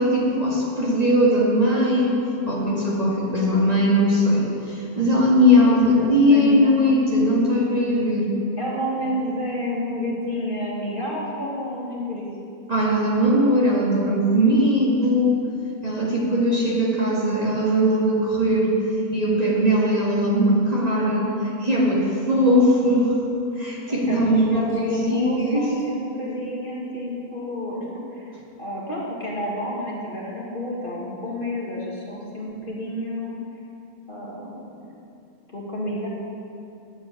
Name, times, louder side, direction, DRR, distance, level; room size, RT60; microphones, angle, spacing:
voice 1, 0.0-8.3 12.7-15.4 15.8-18.7 19.1-23.1 23.6-25.7, equal, 25° right, -6 dB, 2.2 m, -20 dB
voice 2, 5.5-6.7 8.6-12.3 23.9-27.9 28.1-28.3 28.6-33.3 34.1-34.6 35.5-36.1, left 1 dB, 35° left, -5 dB, 2.0 m, -30 dB
10.5 x 7.6 x 8.8 m, 2.7 s
omnidirectional pair, 1.6 m